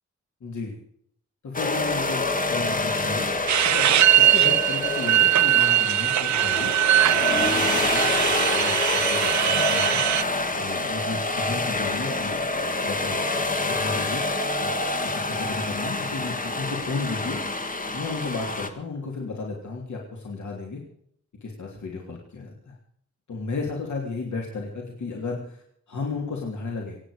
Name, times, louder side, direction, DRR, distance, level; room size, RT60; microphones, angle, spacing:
voice 1, 0.4-0.8 1.4-3.3 3.6-6.7 7.3-10.0 10.5-12.4 12.8-14.2 14.6-14.7 15.0-17.4 17.9-20.8 21.4-22.8 23.3-27.0, left 3 dB, 75° left, -1 dB, 3.1 m, -33 dB
sound 1, 1.5-18.7, left 2 dB, 30° left, 1.6 m, -27 dB
sound 2, 3.5-10.2, right 11 dB, 75° right, 0.5 m, -21 dB
26.0 x 9.3 x 5.0 m, 0.68 s
wide cardioid pair, 165°, 29 cm